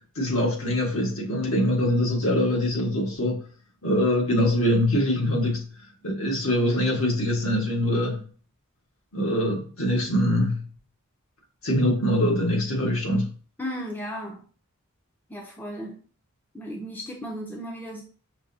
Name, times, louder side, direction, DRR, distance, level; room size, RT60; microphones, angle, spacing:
voice 1, 0.1-3.4 3.8-5.7 6.0-8.2 9.1-10.6 11.6-13.3, left 1 dB, 70° left, 1.7 m, -23 dB
voice 2, 13.6-14.4 15.3-16.0 16.5-18.0, equal, 10° left, 0.6 m, -35 dB
5.9 x 2.8 x 2.8 m
head